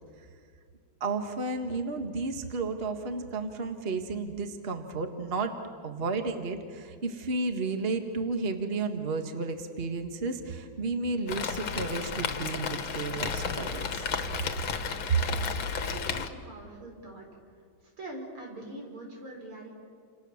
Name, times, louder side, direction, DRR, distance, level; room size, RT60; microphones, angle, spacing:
voice 1, 1.0-5.6 5.8-14.1 15.1-15.2, right 3 dB, 30° right, 5 dB, 1.7 m, -32 dB
Rain, 11.3-16.3, left 6 dB, 75° left, 2.3 m, -33 dB
voice 2, 15.8-17.3 18.0-19.8, right 1 dB, 85° right, 0 dB, 6.4 m, -43 dB
29.5 x 27.5 x 7.2 m, 2.2 s
omnidirectional pair, 2.3 m